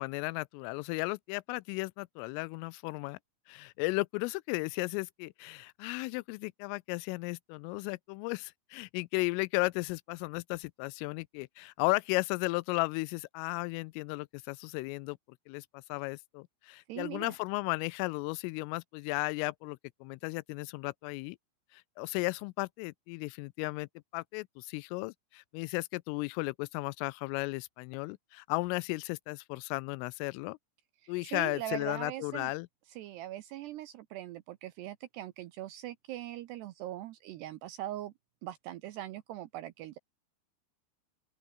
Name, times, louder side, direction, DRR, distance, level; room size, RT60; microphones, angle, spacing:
voice 1, 0.0-3.2 3.5-15.2 15.5-21.4 21.7-30.6 31.1-32.7, left 25 dB, 85° left, 3.1 m, -35 dB
voice 2, 16.9-17.4 31.0-32.5 32.9-38.1 38.4-40.0, right 14 dB, 80° right, 2.5 m, -41 dB
open air
omnidirectional pair, 5.8 m